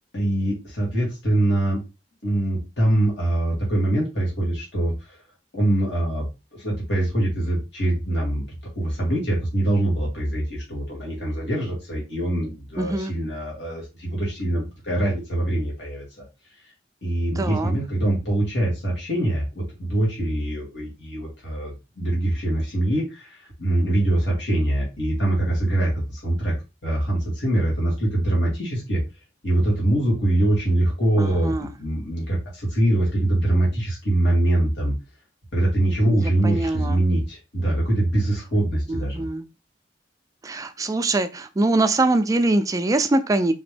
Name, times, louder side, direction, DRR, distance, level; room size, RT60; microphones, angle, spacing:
voice 1, 0.1-1.8 2.2-5.2 5.5-16.2 17.0-26.5 26.8-29.0 29.4-34.9 35.5-39.2, right 1 dB, 85° left, 2.1 m, -23 dB
voice 2, 12.8-13.1 17.4-17.7 31.2-31.7 36.1-37.0 38.9-39.5 40.4-43.5, right 2 dB, 20° right, 0.3 m, -23 dB
4.2 x 2.9 x 3.3 m
head